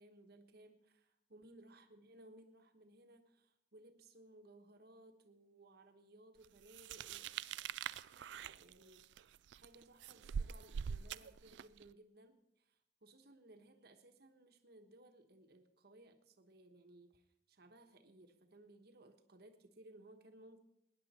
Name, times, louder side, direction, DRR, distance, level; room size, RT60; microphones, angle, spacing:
voice 1, 0.0-7.3 8.1-20.6, right 1 dB, 60° right, 6 dB, 1.3 m, -62 dB
sound 1, 6.7-11.8, right 7 dB, 75° right, 0.4 m, -44 dB
19.0 x 10.0 x 4.3 m, 0.80 s
head